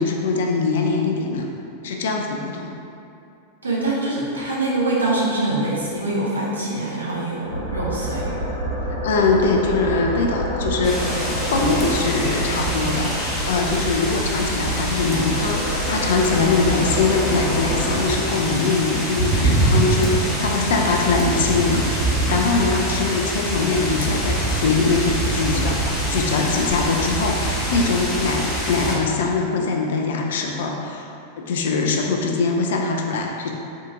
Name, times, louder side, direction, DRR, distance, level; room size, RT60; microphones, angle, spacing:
voice 1, 0.0-1.4 1.8-2.7 9.0-11.0 11.5-31.1 31.5-33.5, left 4 dB, 60° left, 1 dB, 0.3 m, -22 dB
voice 2, 3.6-8.3, right 2 dB, 75° right, -5 dB, 0.6 m, -24 dB
sound 1, 7.5-18.0, right 1 dB, 75° left, 1.0 m, -27 dB
sound 2, 10.8-29.0, right 1 dB, 15° left, 0.7 m, -25 dB
sound 3, 11.0-20.9, right 2 dB, 30° right, 0.4 m, -35 dB
3.6 x 2.4 x 2.6 m, 2.7 s
figure-of-eight pair, 90°, 0 cm